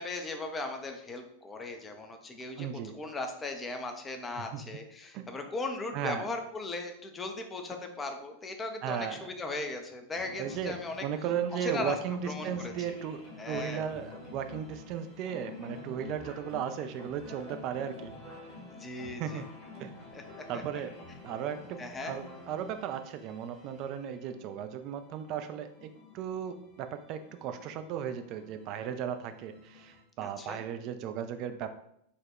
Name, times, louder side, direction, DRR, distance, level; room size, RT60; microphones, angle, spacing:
voice 1, 0.0-2.7 2.9-11.0 11.6-12.0 12.2-13.0 13.4-13.8 18.7-19.4 20.1-20.6 21.8-22.2 30.2-30.6, left 2 dB, 15° left, 5 dB, 0.5 m, -38 dB
voice 2, 2.6-3.0 4.4-4.7 5.1-5.3 5.9-6.2 8.8-9.3 10.4-18.1 19.2-19.5 19.8-19.9 20.5-21.0 21.2-31.7, right 8 dB, 40° right, 8 dB, 0.4 m, -36 dB
sound 1, 10.1-30.0, left 3 dB, 40° left, 1.5 m, -49 dB
4.0 x 2.3 x 4.5 m, 0.73 s
figure-of-eight pair, 90°, 0 cm